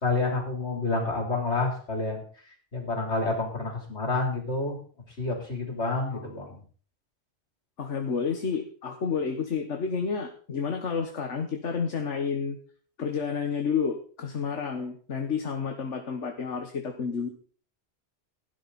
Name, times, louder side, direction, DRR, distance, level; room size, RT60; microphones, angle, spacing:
voice 1, 0.0-2.2 2.7-4.8 5.2-6.6, left 3 dB, 70° left, 1 dB, 4.1 m, -28 dB
voice 2, 7.8-12.6 13.0-17.3, left 6 dB, 85° left, 4 dB, 1.7 m, -30 dB
16.0 x 11.0 x 4.2 m, 0.44 s
omnidirectional pair, 1.2 m